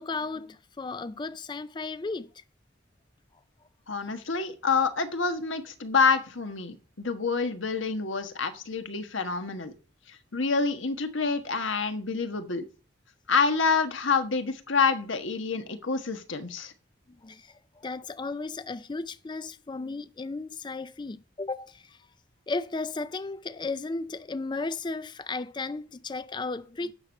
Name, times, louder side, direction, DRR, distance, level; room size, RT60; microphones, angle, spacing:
voice 1, 0.0-2.4 17.2-22.0 22.5-26.9, left 3 dB, 25° left, 0.4 m, -35 dB
voice 2, 3.9-9.7 10.1-12.6 13.3-16.7, left 5 dB, 80° left, 1.4 m, -27 dB
9.6 x 6.2 x 6.5 m
head